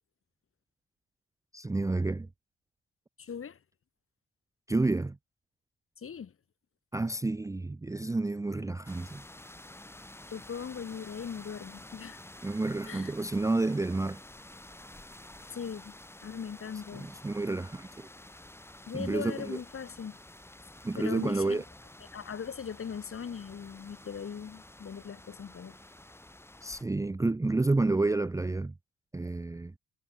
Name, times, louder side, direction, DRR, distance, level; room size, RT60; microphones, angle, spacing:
voice 1, 1.5-2.3 4.7-5.2 6.9-9.2 12.4-14.2 17.0-17.9 18.9-19.6 20.8-21.6 26.6-28.7 29.1-29.7, right 2 dB, 10° right, 0.6 m, -30 dB
voice 2, 3.2-3.6 6.0-6.3 10.3-12.2 12.9-13.1 15.5-15.9 16.2-17.1 18.9-20.2 21.0-21.6 22.1-25.8, left 7 dB, 45° left, 4.4 m, -39 dB
sound 1, 8.8-26.8, left 1 dB, 10° left, 2.7 m, -50 dB
cardioid pair, 90°, 30 cm